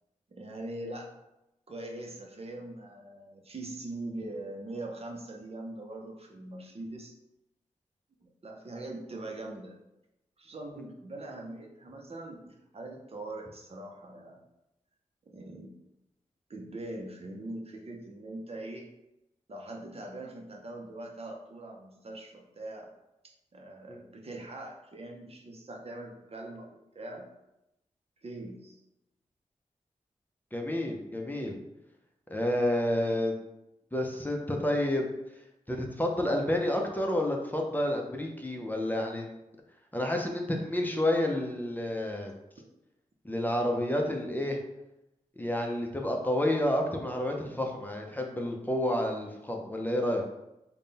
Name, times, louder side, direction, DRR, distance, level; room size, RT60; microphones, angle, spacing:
voice 1, 0.3-1.1 1.7-7.1 8.2-9.8 10.4-14.4 15.3-15.7 16.5-18.9 19.5-22.9 23.2-27.3 28.2-28.8 42.6-42.7, right 2 dB, 50° right, 1 dB, 0.7 m, -42 dB
voice 2, 30.5-31.6 32.3-33.3 33.9-35.1 35.7-39.3 39.9-42.3 43.2-44.6 45.4-50.2, left 1 dB, 15° left, 1 dB, 0.6 m, -29 dB
3.6 x 2.2 x 4.0 m, 0.90 s
cardioid pair, 60°, 13 cm